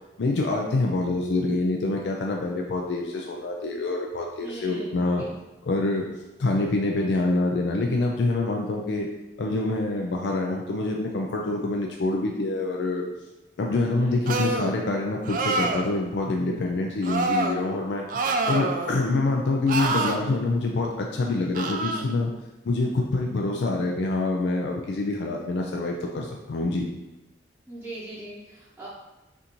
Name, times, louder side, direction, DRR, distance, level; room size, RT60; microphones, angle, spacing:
voice 1, 0.2-5.2 5.6-6.0 6.4-9.1 9.4-13.0 13.6-18.1 18.5-22.3 22.6-26.9, left 2 dB, 75° left, 0 dB, 0.4 m, -26 dB
voice 2, 4.4-5.3 13.9-14.2 27.7-28.9, right 1 dB, 10° right, -10 dB, 0.8 m, -40 dB
sound 1, 14.3-14.7 15.2-15.9 17.0-17.6 18.1-19.0 19.7-20.2 21.5-22.0, right 3 dB, 50° right, 0.4 m, -26 dB
5.6 x 2.5 x 3.0 m, 1.0 s
head